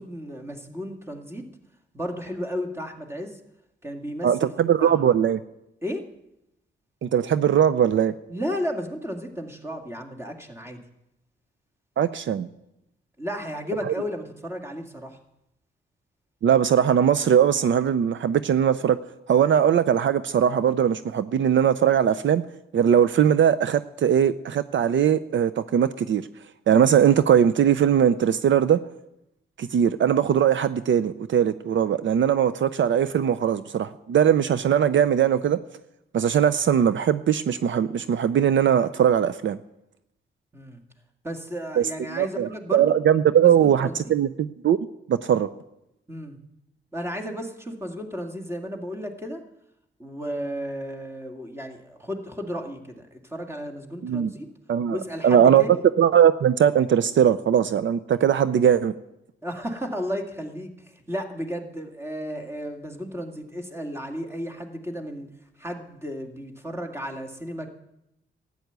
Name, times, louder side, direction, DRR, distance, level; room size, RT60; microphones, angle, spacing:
voice 1, 0.0-1.5 1.9-3.4 3.8-5.1 5.8-6.0 8.3-10.8 13.2-15.2 40.5-40.8 41.2-42.9 43.4-44.1 46.1-46.4 46.9-49.4 50.0-54.5 54.9-55.8 59.4-65.3 65.6-67.7, equal, 10° right, 3 dB, 2.2 m, -33 dB
voice 2, 4.2-5.4 7.0-8.1 12.0-12.5 13.9-14.0 16.4-19.0 19.3-22.4 22.7-26.2 26.7-28.8 29.6-35.6 36.1-39.6 41.8-44.8 45.1-45.5 54.0-54.3 54.7-55.0 55.2-55.6 56.0-58.9, right 9 dB, 70° right, 13 dB, 0.6 m, -20 dB
13.5 x 9.4 x 8.1 m, 0.85 s
cardioid pair, 95°, 21 cm